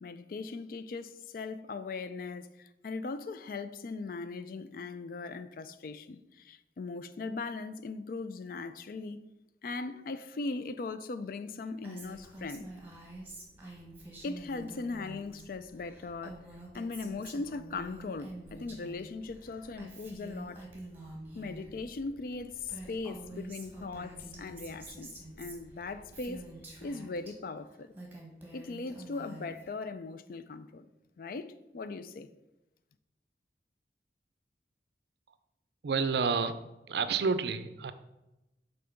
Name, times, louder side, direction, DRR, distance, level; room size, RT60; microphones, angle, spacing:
voice 1, 0.0-9.2 9.6-12.7 14.2-16.5 16.7-20.7 21.4-26.5 26.8-27.9 28.5-30.9 31.2-32.3, left 3 dB, 50° left, 0.3 m, -39 dB
Female speech woman speaking, 11.8-15.4 15.7-19.0 19.3-21.7 22.3-22.4 22.6-27.3 27.8-29.7, right 2 dB, 10° right, 1.1 m, -47 dB
sound 1, 11.9-26.9, equal, 30° left, 1.8 m, -59 dB
voice 2, 35.8-36.5 36.9-37.9, right 5 dB, 70° right, 0.4 m, -29 dB
5.7 x 3.8 x 5.1 m
head